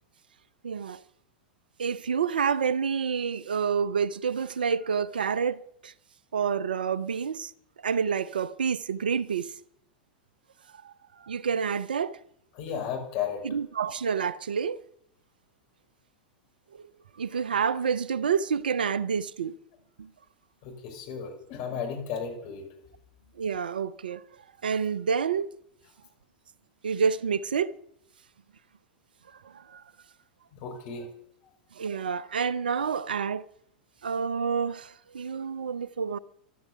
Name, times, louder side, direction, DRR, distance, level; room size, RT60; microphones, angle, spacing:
voice 1, 0.6-1.0 1.8-5.9 6.3-7.5 7.8-9.5 10.8-10.9 11.2-12.2 13.4-14.8 17.2-19.5 20.0-20.1 23.4-24.2 24.6-25.5 26.8-27.8 29.4-29.8 31.8-33.5 34.0-36.2, right 6 dB, 75° right, 0.7 m, -28 dB
voice 2, 12.6-13.4 20.6-22.7 30.5-31.1, left 7 dB, 50° left, 5.3 m, -34 dB
15.0 x 12.0 x 6.8 m
figure-of-eight pair, 95°, 5 cm